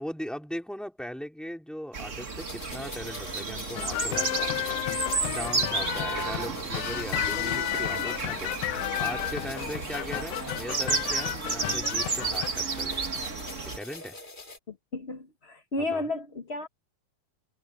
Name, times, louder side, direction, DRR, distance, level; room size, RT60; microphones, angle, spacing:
voice 1, 0.0-4.8 5.2-8.5 9.0-13.3 13.6-14.2 15.8-16.0, equal, ahead, 4.1 m, -39 dB
sound 1, 1.9-13.8, right 4 dB, 35° right, 1.4 m, -32 dB
sound 2, 2.4-14.6, left 2 dB, 20° left, 1.6 m, -44 dB
sound 3, 3.7-12.5, left 16 dB, 85° left, 1.4 m, -32 dB
voice 2, 14.7-16.7, left 2 dB, 65° left, 0.6 m, -33 dB
omnidirectional pair, 3.5 m